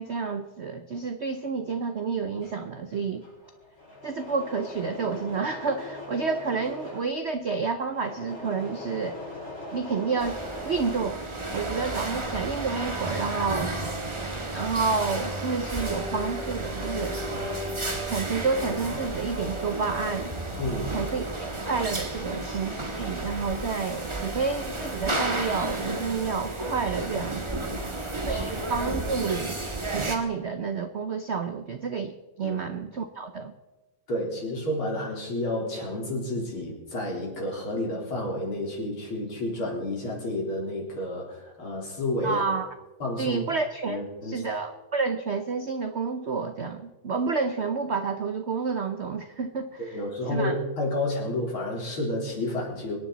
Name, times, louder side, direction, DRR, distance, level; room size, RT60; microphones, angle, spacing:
voice 1, 0.0-3.3 4.0-9.2 9.7-11.2 11.5-13.7 14.5-17.2 18.0-20.3 20.9-27.4 28.3-29.6 29.8-33.5 42.2-42.7 43.2-50.0 50.3-50.6, right 5 dB, 70° right, 8 dB, 0.6 m, -30 dB
Engine / Mechanisms, 2.1-11.8 12.1-14.5 14.7-15.4, left 1 dB, 40° left, 6.3 m, -41 dB
sound 1, 10.2-30.2, right 2 dB, 15° right, 1.3 m, -32 dB
sound 2, 11.0-22.6, left 1 dB, 35° right, 5.9 m, -41 dB
voice 2, 20.6-20.9 27.7-28.4 32.4-32.6 34.1-42.4 43.0-43.4 43.9-44.4 49.8-53.0, left 1 dB, 85° left, -2 dB, 4.7 m, -30 dB
24.5 x 10.0 x 4.1 m, 1.1 s
omnidirectional pair, 2.2 m